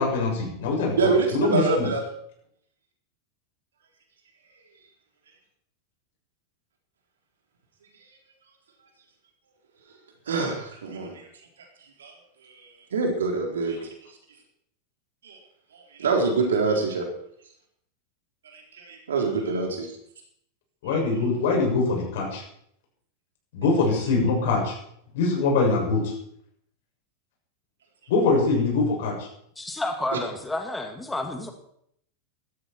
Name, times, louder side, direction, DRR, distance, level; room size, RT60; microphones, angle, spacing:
voice 1, 0.0-1.9 20.8-22.4 23.5-24.7 25.1-26.1 28.1-29.3, left 3 dB, 65° left, 0 dB, 7.0 m, -23 dB
voice 2, 1.0-2.0 10.3-11.2 12.0-12.1 12.5-13.8 15.2-15.4 15.7-17.0 18.5-19.9, right 4 dB, 80° right, 2 dB, 4.0 m, -25 dB
voice 3, 29.6-31.5, left 2 dB, 10° left, 4 dB, 2.4 m, -30 dB
15.5 x 13.5 x 4.6 m, 0.70 s
hypercardioid pair, 95°, 0 cm